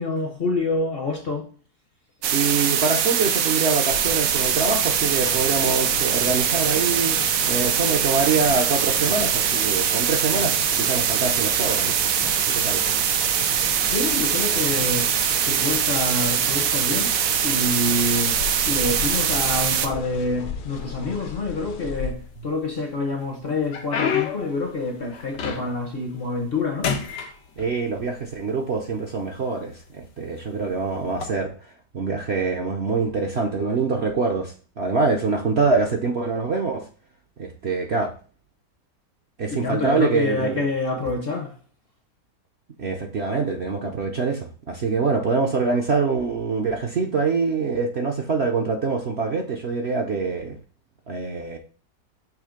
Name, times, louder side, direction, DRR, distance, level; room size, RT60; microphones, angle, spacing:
voice 1, 0.0-1.5 13.9-15.1 15.4-17.1 17.4-18.4 18.6-26.9 39.5-41.6, left 2 dB, 45° left, 0.8 m, -27 dB
sound 1, 2.2-19.9, right 8 dB, 80° right, 1.4 m, -22 dB
voice 2, 2.3-12.1 12.5-12.8 27.6-31.5 31.9-36.8 37.4-38.1 39.4-40.6 42.8-50.6 51.1-51.6, right 4 dB, 50° right, 0.8 m, -25 dB
sound 2, 3.9-22.1, left 7 dB, 65° left, 1.2 m, -36 dB
sound 3, 22.0-22.7 23.2-25.9 26.3-26.6 26.8-28.1 28.9-29.0 29.7-29.9 31.1-31.3, left 7 dB, 90° left, 1.6 m, -29 dB
6.5 x 3.3 x 5.0 m
omnidirectional pair, 1.9 m